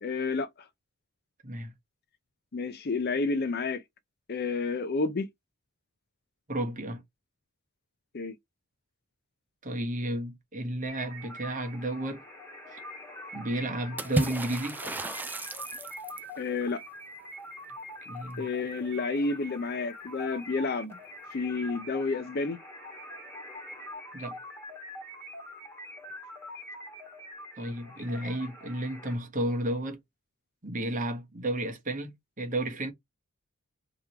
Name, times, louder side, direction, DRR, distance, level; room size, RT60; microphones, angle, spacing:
voice 1, 0.0-0.5 2.5-3.8 4.3-5.3 8.1-8.4 16.4-16.8 18.4-21.0 21.3-22.6, left 3 dB, 45° left, 0.5 m, -30 dB
voice 2, 6.5-7.0 9.6-12.2 12.7-12.8 13.3-14.8 18.0-18.5 24.1-24.4 27.6-30.0 30.6-32.9, right 1 dB, 35° right, 1.3 m, -32 dB
sound 1, 10.9-29.2, left 1 dB, 10° left, 1.8 m, -44 dB
Water / Splash splatter, 14.0-16.4, right 1 dB, 10° right, 0.3 m, -32 dB
3.6 x 3.0 x 4.5 m
head